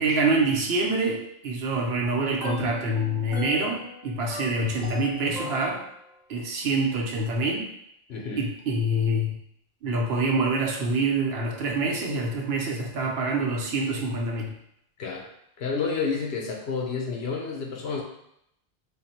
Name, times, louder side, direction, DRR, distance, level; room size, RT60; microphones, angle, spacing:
voice 1, 0.0-5.8 6.3-7.7 8.4-9.4 9.8-14.5, right 2 dB, 70° right, 0 dB, 1.0 m, -26 dB
sound 1, 2.2-6.2, left 3 dB, 5° right, 0.6 m, -40 dB
voice 2, 8.1-8.5 15.0-15.3 15.6-18.0, left 5 dB, 75° left, 0 dB, 1.0 m, -30 dB
3.5 x 2.1 x 4.3 m, 0.76 s
omnidirectional pair, 1.1 m